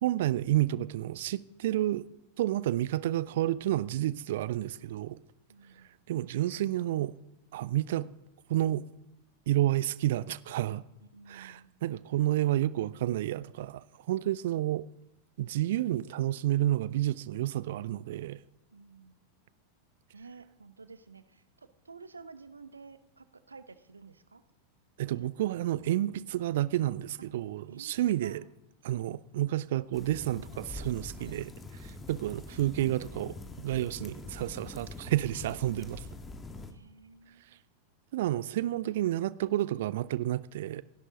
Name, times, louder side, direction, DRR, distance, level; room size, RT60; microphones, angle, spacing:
voice 1, 0.0-2.1 2.4-5.2 6.1-7.1 7.5-8.1 8.5-8.8 9.5-10.8 11.3-14.8 15.4-18.4 25.0-28.4 28.8-31.5 31.8-36.0 38.1-40.8, right 14 dB, 55° right, 0.5 m, -30 dB
voice 2, 5.5-6.0 11.0-11.7 14.4-14.6 18.7-19.3 20.1-24.4 25.1-25.4 27.7-28.4 31.2-31.5 36.7-37.6, right 4 dB, 75° right, 1.0 m, -52 dB
sound 1, 29.9-36.7, left 2 dB, 20° left, 1.8 m, -44 dB
29.0 x 11.0 x 3.8 m
figure-of-eight pair, 90°, 0 cm